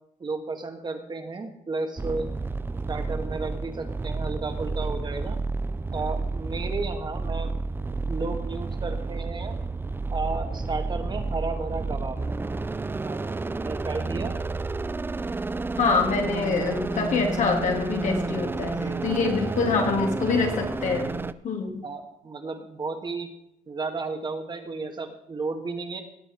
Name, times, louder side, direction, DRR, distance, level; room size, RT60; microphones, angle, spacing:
voice 1, 0.2-2.3 2.9-5.4 5.9-7.6 7.9-9.6 10.1-12.2 13.0-13.2 13.6-14.4 18.6-19.9 21.8-23.3 23.7-26.0, right 3 dB, 35° right, 5 dB, 1.7 m, -33 dB
sound 1, 2.0-21.3, right 3 dB, 15° right, 0.5 m, -31 dB
voice 2, 15.8-21.1 21.4-21.8, left 4 dB, 65° left, 2 dB, 2.9 m, -25 dB
19.0 x 8.0 x 4.6 m, 0.78 s
cardioid pair, 115°, 13 cm